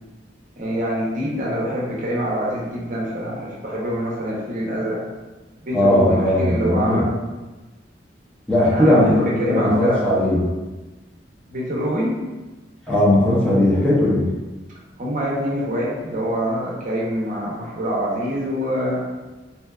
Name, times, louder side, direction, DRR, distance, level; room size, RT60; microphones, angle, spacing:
voice 1, 0.6-5.0 5.6-7.1 8.6-10.2 11.5-12.2 15.0-19.0, equal, 45° right, -5 dB, 0.6 m, -25 dB
voice 2, 5.7-7.0 8.5-10.5 12.9-14.3, left 1 dB, 5° left, -8 dB, 0.5 m, -18 dB
2.6 x 2.2 x 2.2 m, 1.2 s
head